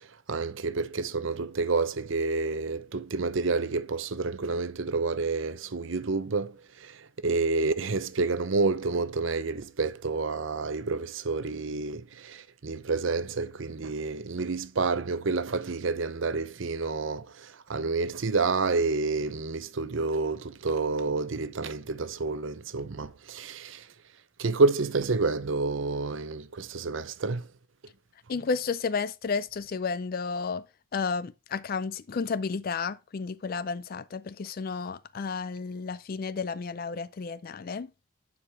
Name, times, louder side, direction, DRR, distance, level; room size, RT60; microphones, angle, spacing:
voice 1, 0.3-6.6 6.8-7.0 7.2-23.8 24.4-27.5, right 3 dB, 65° right, 0.7 m, -29 dB
voice 2, 28.3-30.6 30.9-37.9, left 5 dB, 45° left, 0.4 m, -32 dB
11.0 x 4.9 x 3.5 m
head